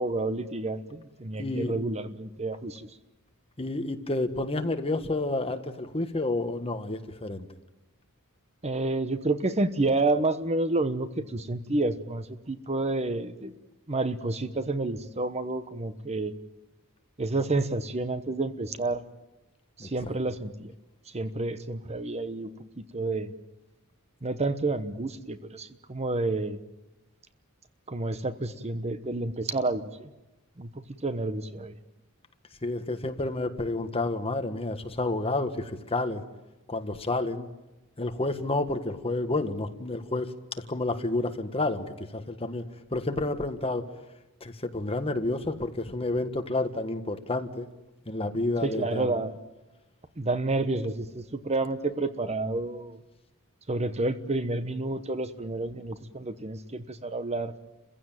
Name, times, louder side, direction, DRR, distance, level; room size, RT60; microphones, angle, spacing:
voice 1, 0.0-2.9 8.6-13.6 13.9-16.3 17.2-19.0 19.8-20.7 21.1-23.3 24.2-26.6 27.9-30.1 30.6-30.7 31.0-31.7 48.6-49.3 50.2-53.0 53.7-57.5, right 2 dB, 30° right, 11 dB, 1.0 m, -29 dB
voice 2, 1.4-1.8 3.6-7.5 19.8-19.9 32.6-36.2 36.7-37.5 38.0-40.3 40.7-42.6 42.9-43.9 44.4-47.7 48.1-49.1, left 2 dB, 25° left, 7 dB, 1.6 m, -30 dB
30.0 x 16.0 x 9.0 m, 1.0 s
head